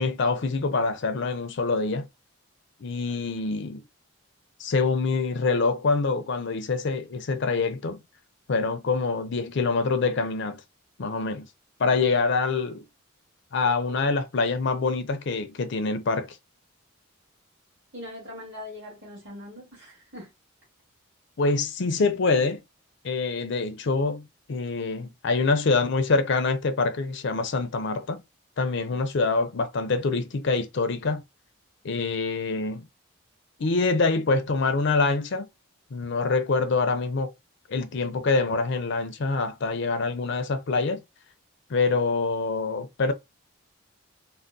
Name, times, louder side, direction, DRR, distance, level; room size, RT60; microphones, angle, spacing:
voice 1, 0.0-2.1 2.8-3.8 4.6-8.0 8.5-10.6 11.0-11.5 11.8-12.8 13.5-16.4 21.4-22.6 23.0-28.2 28.6-31.2 31.8-32.8 33.6-35.5 35.9-37.3 37.7-41.0 41.7-43.1, left 3 dB, 55° left, 0.5 m, -25 dB
voice 2, 17.9-20.3, left 1 dB, 55° right, 1.8 m, -41 dB
3.4 x 2.1 x 2.6 m
head